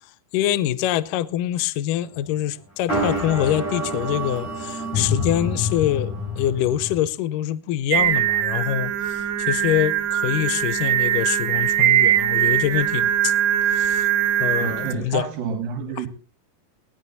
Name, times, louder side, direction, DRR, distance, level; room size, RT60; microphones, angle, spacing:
voice 1, 0.3-13.3 13.7-14.1 14.4-15.3, left 12 dB, 80° left, 1.9 m, -25 dB
sound 1, 2.9-7.0, left 1 dB, 30° left, 6.7 m, -27 dB
Singing, 7.9-14.9, right 11 dB, 85° right, 3.0 m, -21 dB
voice 2, 14.6-16.1, right 6 dB, 65° right, 3.1 m, -29 dB
19.5 x 10.5 x 4.0 m
omnidirectional pair, 4.7 m